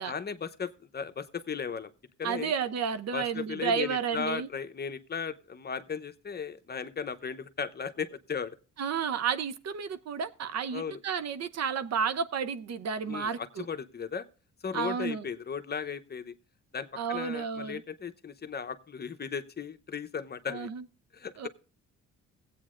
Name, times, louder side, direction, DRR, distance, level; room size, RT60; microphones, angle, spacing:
voice 1, 0.0-1.9 2.2-2.5 3.1-8.6 10.7-11.0 13.1-14.2 14.6-16.3 16.7-20.7 21.1-21.5, left 6 dB, 35° left, 0.9 m, -36 dB
voice 2, 2.2-4.5 8.8-13.6 14.7-15.2 17.0-17.8 20.5-20.8 21.4-21.5, right 6 dB, 60° right, 0.8 m, -31 dB
16.0 x 8.5 x 2.5 m
cardioid pair, 90°, 30 cm